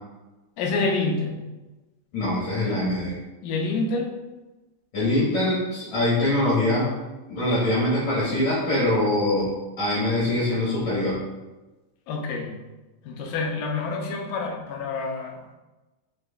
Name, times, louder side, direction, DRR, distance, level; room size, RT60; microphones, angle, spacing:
voice 1, 0.6-1.4 3.4-4.1 12.1-12.5 13.0-15.5, left 3 dB, 80° left, 1 dB, 2.2 m, -27 dB
voice 2, 2.1-3.2 4.9-6.9 7.3-9.5 9.8-11.2, left 1 dB, 65° left, -9 dB, 2.2 m, -23 dB
6.9 x 2.4 x 2.2 m, 1.1 s
omnidirectional pair, 3.9 m